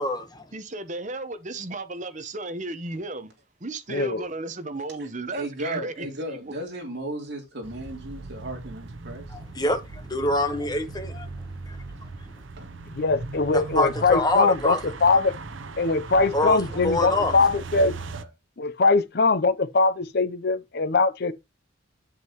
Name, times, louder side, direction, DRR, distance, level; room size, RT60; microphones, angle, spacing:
voice 1, 0.0-0.4 9.3-11.3 13.5-14.8 16.3-17.3, left 1 dB, 20° left, 1.2 m, -25 dB
voice 2, 0.5-3.3 3.6-6.1, right 2 dB, 35° right, 1.0 m, -34 dB
voice 3, 3.9-4.3 13.0-15.3 15.8-17.9 18.6-21.3, left 3 dB, 50° left, 0.6 m, -22 dB
voice 4, 5.0-9.3 12.6-12.7 16.7-17.5 17.7-18.3, right 1 dB, 55° right, 3.0 m, -36 dB
sound 1, 7.6-18.2, right 3 dB, 70° right, 0.8 m, -38 dB
8.2 x 7.6 x 3.0 m
head